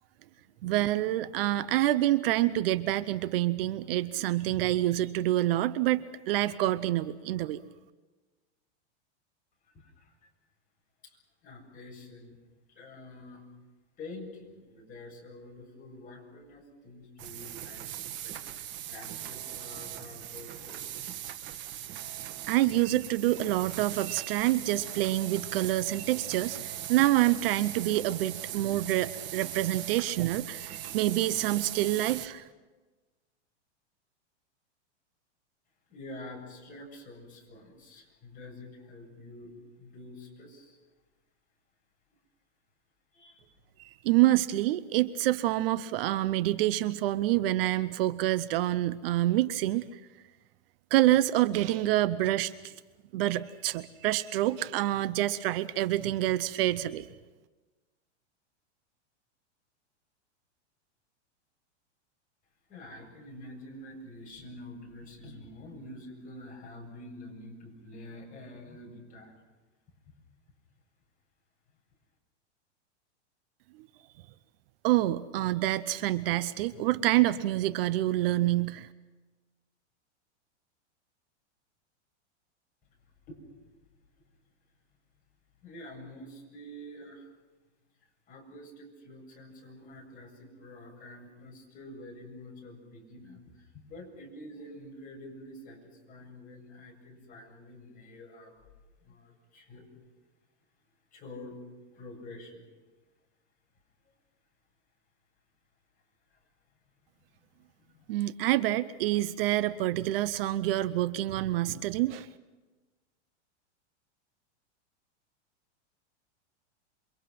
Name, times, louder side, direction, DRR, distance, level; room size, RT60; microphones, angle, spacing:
voice 1, 0.6-7.6 22.5-32.4 43.8-50.0 50.9-52.7 53.1-57.1 73.8-73.9 74.8-78.9 108.1-112.3, right 15 dB, 55° right, 15 dB, 0.8 m, -27 dB
voice 2, 9.7-10.1 11.0-12.4 12.7-13.4 14.0-21.1 35.9-39.5 39.8-40.8 43.1-43.5 62.7-69.4 70.1-70.2 83.3-83.5 85.6-87.3 88.3-98.5 99.0-99.9 101.1-101.6 101.9-102.7 106.3-106.4 107.8-108.1, left 1 dB, 25° left, -1 dB, 7.6 m, -47 dB
sound 1, 17.2-32.3, right 11 dB, 30° right, 1.4 m, -40 dB
28.5 x 24.0 x 6.0 m, 1.2 s
supercardioid pair, 145°, 35 cm